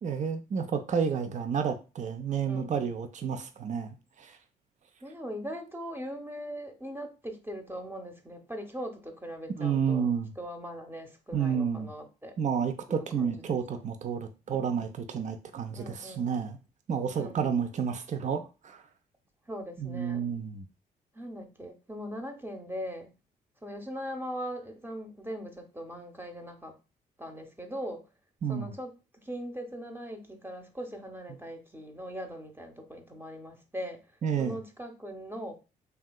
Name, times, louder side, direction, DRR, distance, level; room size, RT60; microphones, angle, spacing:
voice 1, 0.0-4.4 9.5-10.3 11.3-11.9 12.4-16.6 16.9-18.8 19.8-20.6 28.4-28.7 34.2-34.6, right 7 dB, 40° right, 0.5 m, -30 dB
voice 2, 2.4-2.9 5.0-10.1 10.4-12.4 12.9-13.6 14.5-15.0 15.8-16.3 17.1-17.6 19.5-20.3 21.1-23.1 23.6-26.7 27.2-28.0 28.5-28.9 29.2-34.0 34.4-35.6, equal, 10° right, 0.8 m, -40 dB
3.3 x 2.7 x 2.2 m
hypercardioid pair, 45°, 20 cm